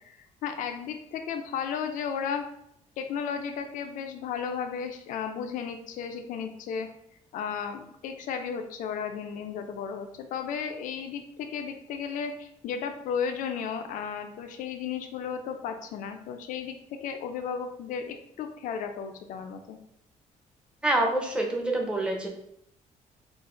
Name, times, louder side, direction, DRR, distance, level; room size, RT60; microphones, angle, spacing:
voice 1, 0.0-2.5 3.0-6.9 7.3-19.8, left 7 dB, 80° left, 6 dB, 0.5 m, -34 dB
voice 2, 20.8-22.3, right 2 dB, 5° right, 1 dB, 0.6 m, -26 dB
3.9 x 2.5 x 3.8 m, 0.77 s
cardioid pair, 145°, 13 cm